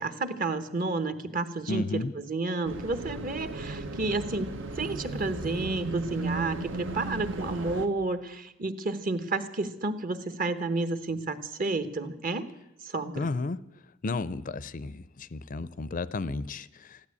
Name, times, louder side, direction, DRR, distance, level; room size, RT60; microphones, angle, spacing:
voice 1, 0.0-12.4 12.8-13.3, right 3 dB, 45° right, 11 dB, 1.1 m, -31 dB
voice 2, 1.7-2.1 13.1-13.6 14.0-17.0, left 3 dB, 45° left, 17 dB, 0.5 m, -33 dB
sound 1, 2.6-7.9, right 2 dB, 80° right, 1.1 m, -35 dB
14.0 x 12.0 x 8.4 m, 0.90 s
head